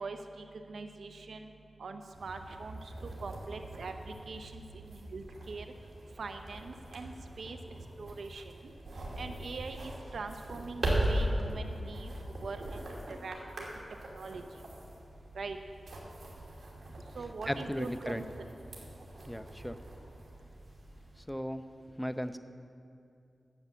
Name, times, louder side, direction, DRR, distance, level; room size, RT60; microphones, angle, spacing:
voice 1, 0.0-1.5 1.8-2.8 3.2-4.6 4.9-5.7 6.2-7.6 8.0-8.4 9.2-12.1 12.4-12.8 13.1-13.4 14.1-14.4 15.3-15.6 17.2-18.5, right 4 dB, 80° right, 6 dB, 0.7 m, -42 dB
sound 1, 2.1-21.2, right 1 dB, 65° right, 2.7 m, -40 dB
voice 2, 17.5-18.2 19.2-19.8 21.3-21.6 22.0-22.4, equal, 5° left, 10 dB, 0.6 m, -36 dB
10.5 x 8.5 x 6.9 m, 2.6 s
cardioid pair, 55°, 0 cm